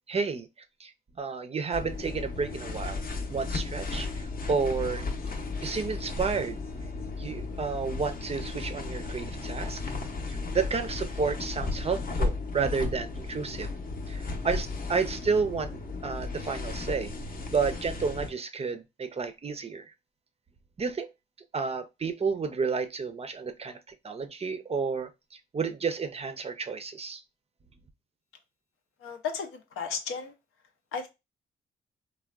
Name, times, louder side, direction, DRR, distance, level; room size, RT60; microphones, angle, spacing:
voice 1, 0.1-0.5 0.8-0.9 1.2-3.0 3.3-5.0 5.6-6.6 7.2-9.8 10.3-13.7 14.1-15.7 16.0-17.1 17.5-19.9 20.8-21.1 21.5-27.2, right 5 dB, 30° right, 0.4 m, -31 dB
sound 1, 1.7-18.3, left 3 dB, 45° left, 0.6 m, -35 dB
voice 2, 29.0-30.3 30.9-31.1, left 6 dB, 90° left, 0.6 m, -34 dB
3.4 x 2.2 x 2.3 m
cardioid pair, 90°, 21 cm